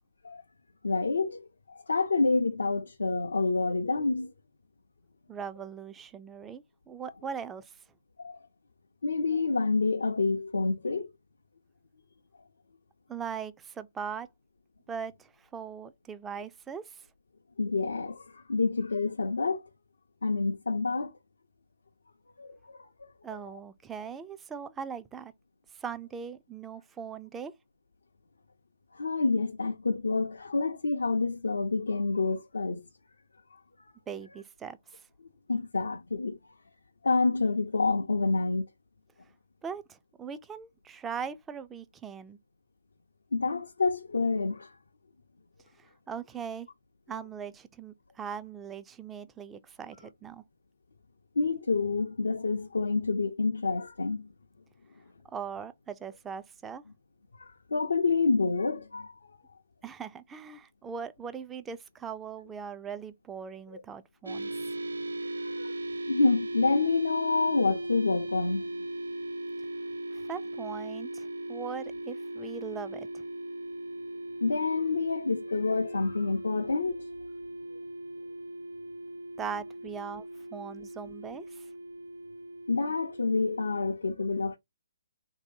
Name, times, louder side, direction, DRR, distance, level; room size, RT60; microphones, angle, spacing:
voice 1, 0.8-4.3 8.2-8.4 9.0-11.1 17.6-19.6 20.2-21.1 22.4-23.4 28.9-32.9 33.5-33.6 35.5-36.5 37.0-38.6 43.3-44.7 51.4-54.3 57.3-59.4 63.7-63.8 65.4-65.7 66.1-68.6 74.4-77.1 77.7-77.8 82.7-84.6, left 3 dB, 85° left, 0.5 m, -28 dB
voice 2, 5.3-7.8 13.1-14.3 14.9-17.1 23.2-25.3 25.7-27.5 34.1-35.1 39.6-42.4 45.8-46.7 47.1-50.4 55.3-56.8 59.8-64.5 70.1-73.2 79.4-80.3 80.5-81.7, right 6 dB, 10° right, 0.3 m, -40 dB
sound 1, 64.3-84.0, right 1 dB, 90° right, 0.3 m, -38 dB
3.1 x 2.7 x 2.6 m
hypercardioid pair, 145°, 0 cm